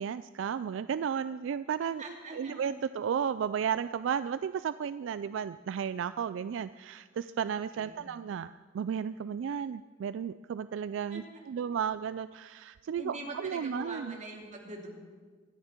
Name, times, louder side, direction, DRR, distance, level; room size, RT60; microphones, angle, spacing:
voice 1, 0.0-2.0 2.3-7.0 7.4-8.5 8.8-12.5 12.9-14.2, right 7 dB, 75° right, 14 dB, 0.3 m, -33 dB
voice 2, 2.0-2.6 7.4-8.1 11.1-11.2 13.0-14.9, right 1 dB, 40° right, 1 dB, 2.6 m, -43 dB
25.0 x 10.0 x 4.5 m, 1.5 s
head